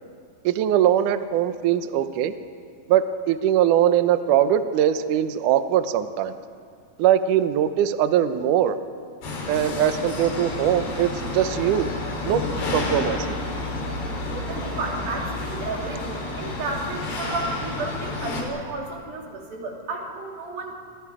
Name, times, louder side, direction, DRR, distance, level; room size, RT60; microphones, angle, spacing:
voice 1, 0.4-2.3 2.9-6.3 7.0-8.8 9.5-11.9 12.2-12.4 12.7-13.4, right 10 dB, 80° right, 10 dB, 1.8 m, -21 dB
sound 1, 9.2-18.4, left 2 dB, 75° left, 5.9 m, -30 dB
voice 2, 14.3-20.8, right 3 dB, 60° right, -1 dB, 4.8 m, -32 dB
29.0 x 26.5 x 4.9 m, 2.2 s
omnidirectional pair, 4.8 m